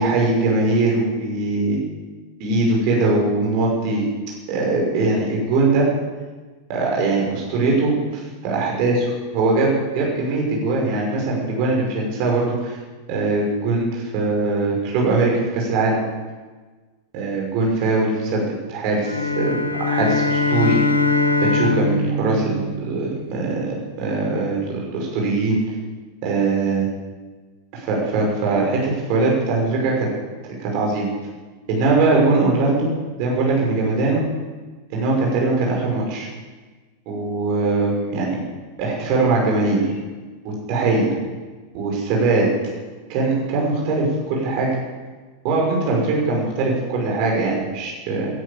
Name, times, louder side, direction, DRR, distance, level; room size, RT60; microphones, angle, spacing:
voice 1, 0.0-1.8 2.4-4.1 4.5-5.9 6.7-8.9 9.3-12.8 13.1-16.0 17.1-18.4 18.7-19.6 19.9-20.8 21.4-25.7 26.2-26.9 27.7-30.1 30.6-31.1 31.7-32.9 33.2-34.2 34.9-36.3 37.1-38.4 38.8-39.9 40.4-41.1 41.7-42.5 43.1-44.7 45.4-48.3, right 3 dB, 45° right, -2 dB, 5.9 m, -21 dB
sound 1, 19.0-23.5, left 3 dB, 85° left, 1.5 m, -22 dB
15.0 x 13.5 x 7.2 m, 1.3 s
figure-of-eight pair, 90°, 0 cm